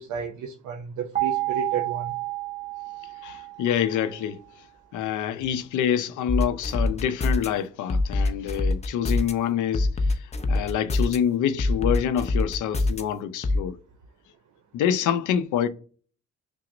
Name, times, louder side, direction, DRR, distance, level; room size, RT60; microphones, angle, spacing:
voice 1, 0.0-2.1, right 6 dB, 75° right, 0.6 m, -32 dB
sound 1, 1.1-4.1, right 18 dB, 20° right, 1.0 m, -30 dB
voice 2, 3.2-4.4 4.9-10.1 10.5-13.8 14.7-15.7, left 9 dB, 80° left, 0.5 m, -26 dB
sound 2, 6.3-7.5 7.9-9.3 9.7-11.2 11.6-13.0 13.4-13.6, left 2 dB, 20° left, 0.5 m, -23 dB
5.8 x 2.1 x 2.5 m
cardioid pair, 90°, 30 cm